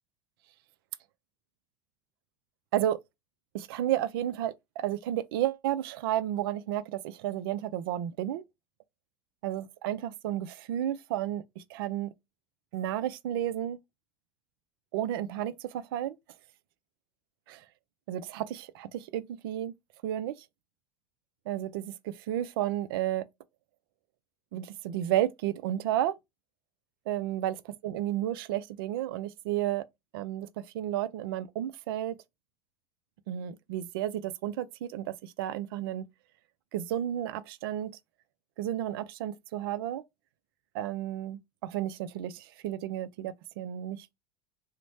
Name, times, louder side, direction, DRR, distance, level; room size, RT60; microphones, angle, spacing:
voice 1, 3.5-8.4 9.4-12.1 12.7-13.8 14.9-16.2 17.5-17.6 18.1-19.7 20.0-20.3 21.5-23.2 24.5-26.1 27.1-27.6 27.8-29.8 30.1-32.2 33.3-36.1 36.7-37.9 38.6-40.0 40.7-44.1, right 12 dB, 70° right, 0.4 m, -32 dB
3.1 x 2.1 x 4.0 m
hypercardioid pair, 80°, 13 cm